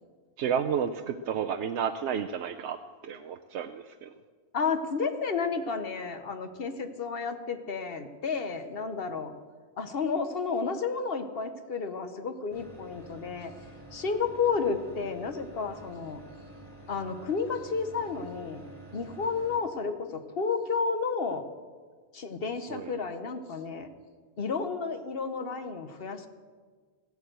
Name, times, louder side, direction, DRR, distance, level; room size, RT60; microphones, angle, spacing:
voice 1, 0.4-2.8 3.0-4.1 22.7-22.9, right 8 dB, 85° right, 5 dB, 0.9 m, -31 dB
voice 2, 4.5-9.3 9.8-13.5 13.9-16.2 16.9-18.6 18.9-21.4 22.1-23.9 24.4-26.3, left 5 dB, 60° left, 8 dB, 1.2 m, -31 dB
sound 1, 12.5-19.6, right 2 dB, ahead, 3.3 m, -49 dB
15.5 x 8.2 x 7.8 m, 1.5 s
omnidirectional pair, 1.1 m